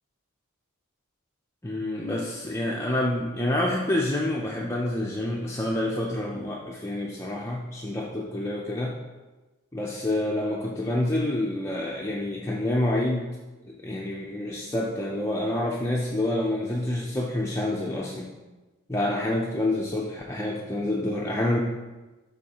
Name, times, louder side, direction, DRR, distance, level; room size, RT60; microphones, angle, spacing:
voice 1, 1.6-8.9 9.7-13.4 13.7-18.3 18.9-21.6, left 1 dB, 15° left, -3 dB, 0.5 m, -28 dB
11.5 x 4.0 x 2.9 m, 1.2 s
head